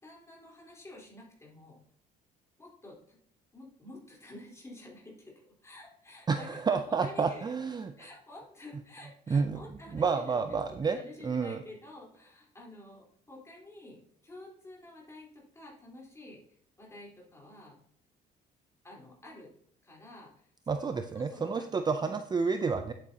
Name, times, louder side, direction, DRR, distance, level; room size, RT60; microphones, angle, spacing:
voice 1, 0.0-1.8 2.6-3.2 3.5-6.6 6.9-7.5 8.0-17.7 18.8-19.5 19.8-21.7 22.0-22.2, left 1 dB, 15° left, -3 dB, 3.9 m, -50 dB
voice 2, 6.3-7.9 9.3-9.6 9.9-11.0 11.2-11.6 20.7-22.9, right 5 dB, 25° right, 8 dB, 0.5 m, -29 dB
9.6 x 8.8 x 2.8 m, 0.67 s
cardioid pair, 110°, 17 cm